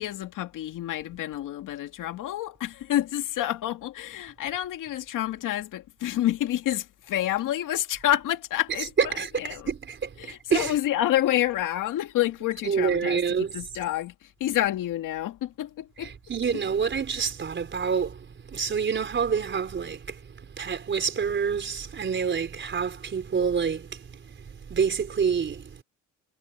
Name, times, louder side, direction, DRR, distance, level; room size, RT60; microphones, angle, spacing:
voice 1, 0.0-9.7 10.2-16.1 16.5-16.6, left 13 dB, 90° left, 2.2 m, -28 dB
voice 2, 9.0-10.7 12.7-13.5 16.0-18.2 18.5-20.2 20.5-24.2 24.7-25.8, right 6 dB, 40° right, 4.3 m, -27 dB
cardioid pair, 140°, 31 cm